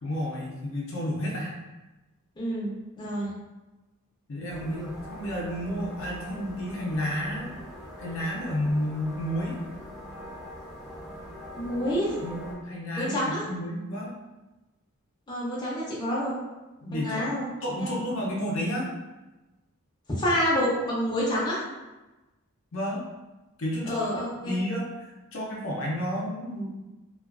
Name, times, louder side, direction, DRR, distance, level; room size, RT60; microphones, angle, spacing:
voice 1, 0.0-1.5 4.3-7.5 8.0-9.6 12.2-14.1 16.8-17.3 17.6-18.9 22.7-23.0 23.6-24.1 24.4-26.7, equal, 65° left, -3 dB, 0.5 m, -31 dB
voice 2, 2.4-3.3 11.6-12.1 13.0-13.4 15.3-16.4 16.9-17.5 17.8-17.9 20.2-21.6 23.9-24.5, equal, 20° left, -7 dB, 0.6 m, -28 dB
sound 1, 4.5-12.5, equal, 20° right, 0.8 m, -42 dB
2.4 x 2.2 x 2.3 m, 1.1 s
head